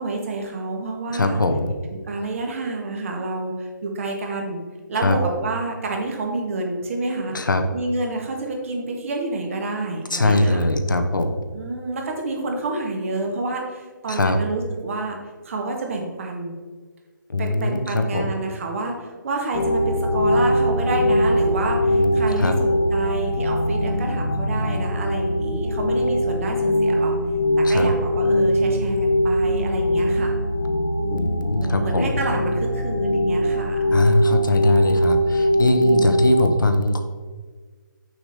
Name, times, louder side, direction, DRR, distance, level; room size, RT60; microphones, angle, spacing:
voice 1, 0.0-1.4 1.9-4.6 4.9-7.4 7.7-10.7 11.5-15.2 15.4-16.6 17.4-27.1 27.6-30.3 31.6-33.8, right 2 dB, 40° right, 2 dB, 1.2 m, -28 dB
voice 2, 1.1-1.7 5.0-5.2 7.3-7.7 10.1-11.4 14.1-14.4 17.3-18.3 21.9-22.6 27.6-27.9 31.1-32.1 33.9-37.0, left 2 dB, 75° left, 7 dB, 0.8 m, -21 dB
sound 1, 19.5-36.5, equal, 45° left, 0.9 m, -21 dB
6.3 x 6.2 x 3.4 m, 1.5 s
figure-of-eight pair, 145°, 11 cm